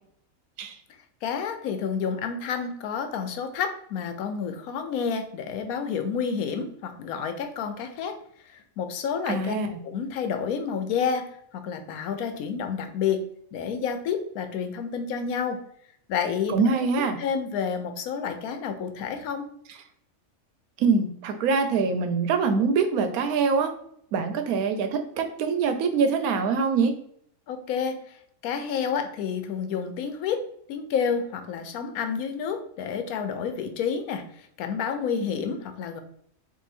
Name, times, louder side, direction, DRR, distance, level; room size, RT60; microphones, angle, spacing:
voice 1, 1.2-8.2 8.5-9.5 9.8-13.2 13.5-15.6 16.1-16.5 17.2-19.5 27.5-28.0 28.4-30.4 30.7-34.2 34.6-36.0, left 6 dB, 90° left, 8 dB, 1.1 m, -29 dB
voice 2, 9.3-9.8 16.5-17.2 20.8-23.7 24.1-26.9, right 5 dB, 90° right, 7 dB, 1.1 m, -24 dB
3.7 x 2.6 x 4.1 m, 0.67 s
omnidirectional pair, 1.5 m